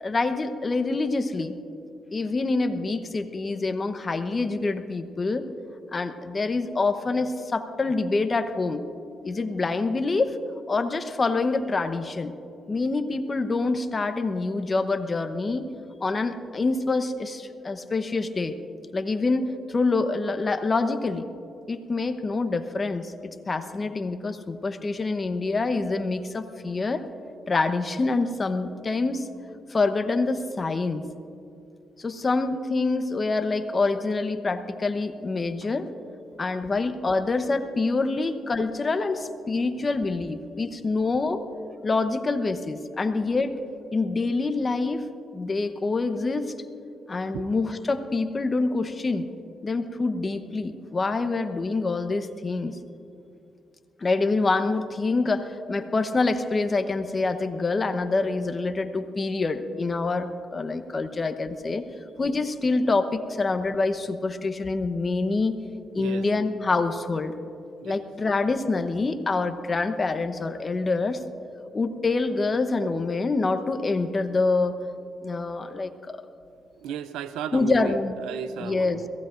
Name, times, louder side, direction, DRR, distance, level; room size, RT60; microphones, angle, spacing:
voice 1, 0.0-1.5 2.1-5.5 5.9-8.8 9.2-10.4 10.7-12.3 12.7-15.7 16.0-18.5 18.9-21.3 21.7-23.1 23.5-27.0 27.5-29.3 29.7-31.1 32.0-35.8 36.4-41.4 41.8-43.6 43.9-45.0 45.3-46.5 47.1-49.3 49.6-52.8 54.0-61.9 62.2-65.5 65.9-67.3 67.8-71.2 71.7-74.8 75.2-76.2 77.5-78.2 78.6-79.0, left 3 dB, 40° left, 9 dB, 0.9 m, -26 dB
voice 2, 76.8-78.0 78.2-79.1, right 8 dB, 85° right, 13 dB, 0.5 m, -35 dB
22.5 x 16.0 x 2.6 m, 2.5 s
supercardioid pair, 55°, 0 cm